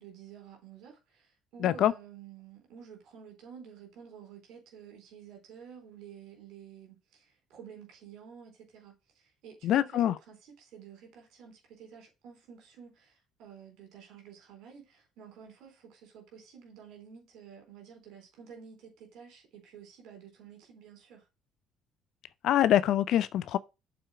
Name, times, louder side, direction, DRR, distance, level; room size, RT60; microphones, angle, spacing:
voice 1, 0.0-21.3, right 7 dB, 65° right, 3.8 m, -51 dB
voice 2, 1.6-1.9 9.6-10.1 22.4-23.6, left 12 dB, 65° left, 0.5 m, -24 dB
6.9 x 4.4 x 6.2 m
hypercardioid pair, 60°, 0 cm